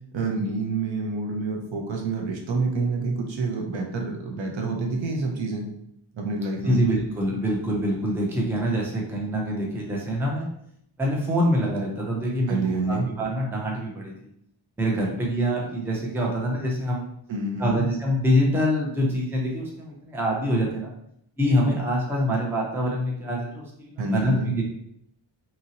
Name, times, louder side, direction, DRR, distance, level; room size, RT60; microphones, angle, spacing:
voice 1, 0.1-5.7 6.1-6.8 12.5-13.1 17.3-17.9 24.0-24.5, right 3 dB, 70° right, 1 dB, 0.7 m, -27 dB
voice 2, 6.7-10.5 11.0-12.6 12.9-14.1 14.8-17.1 17.6-20.9 21.4-24.6, equal, 5° right, -2 dB, 0.4 m, -25 dB
2.8 x 2.6 x 2.8 m, 0.75 s
wide cardioid pair, 160°, 48 cm